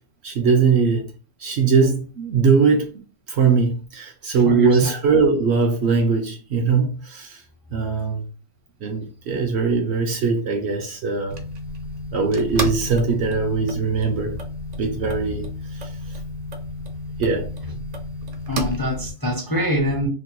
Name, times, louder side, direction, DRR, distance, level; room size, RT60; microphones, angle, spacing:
voice 1, 0.2-1.1 1.4-2.9 3.3-7.4 7.7-8.3 8.8-11.4 12.1-14.4 14.8-15.9 17.2-17.5 17.7-17.8, right 5 dB, 65° right, 0.7 m, -21 dB
voice 2, 4.5-4.9 18.5-20.1, left 1 dB, 25° left, 0.4 m, -24 dB
sound 1, 11.3-19.1, equal, 80° right, 0.3 m, -32 dB
4.2 x 2.8 x 2.2 m
omnidirectional pair, 1.4 m